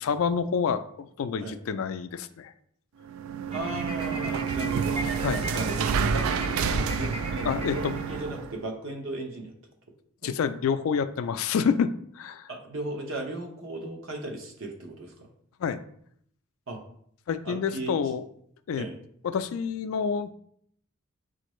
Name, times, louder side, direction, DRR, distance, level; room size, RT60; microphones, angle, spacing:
voice 1, 0.0-2.5 5.2-5.5 7.4-8.0 10.2-12.5 15.6-15.8 17.3-18.3 18.7-18.9 19.2-20.3, left 6 dB, 80° left, 11 dB, 0.3 m, -28 dB
sound 1, 3.0-8.6, right 6 dB, 90° right, 0.3 m, -29 dB
sound 2, 3.5-8.7, right 2 dB, 25° right, 0.5 m, -38 dB
voice 2, 3.5-5.0 5.5-9.5 10.2-10.3 12.5-15.1 16.7-16.8 17.4-18.0 18.8-19.0, right 2 dB, 70° right, 2 dB, 0.8 m, -36 dB
6.3 x 2.5 x 3.0 m, 0.66 s
head